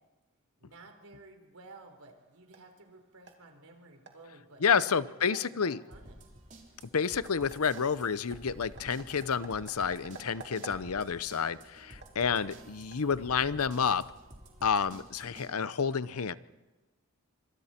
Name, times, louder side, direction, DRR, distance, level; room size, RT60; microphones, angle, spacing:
voice 1, 0.6-6.1 12.2-12.8, right 3 dB, 85° right, 5 dB, 3.9 m, -53 dB
sound 1, 1.9-13.7, right 3 dB, 55° right, 2.6 m, -53 dB
voice 2, 4.6-5.8 6.9-14.0 14.6-16.3, left 6 dB, 85° left, 16 dB, 0.7 m, -29 dB
sound 2, 5.9-15.5, right 1 dB, 35° right, 3.7 m, -52 dB
26.5 x 25.5 x 4.4 m, 1.2 s
head